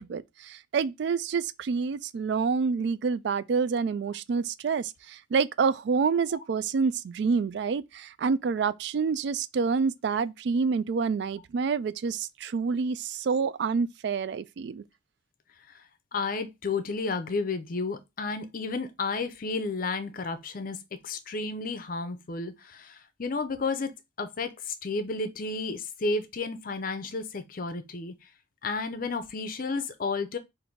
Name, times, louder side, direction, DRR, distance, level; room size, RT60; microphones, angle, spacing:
voice 1, 0.0-14.8, right 5 dB, 60° right, 0.3 m, -28 dB
voice 2, 16.1-20.8 21.0-28.1 28.6-30.4, left 3 dB, 45° left, 0.5 m, -32 dB
3.9 x 2.6 x 4.4 m
head